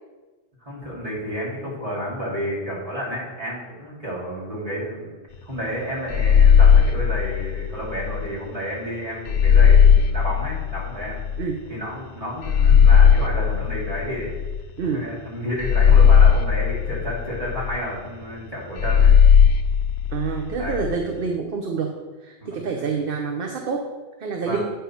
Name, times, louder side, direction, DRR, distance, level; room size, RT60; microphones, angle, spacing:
voice 1, 0.6-5.2 5.4-11.2 11.7-14.3 14.8-19.2 20.6-20.8 22.4-22.9 24.4-24.6, equal, 35° right, -6 dB, 2.5 m, -31 dB
sound 1, 6.1-8.3 9.3-11.4 12.4-14.8 15.6-17.8 18.8-20.9, left 7 dB, 85° left, 0.9 m, -16 dB
voice 2, 20.1-21.9 22.2-23.9 24.2-24.7, right 5 dB, 65° right, 2 dB, 0.9 m, -27 dB
8.6 x 5.6 x 4.3 m, 1.2 s
omnidirectional pair, 1.1 m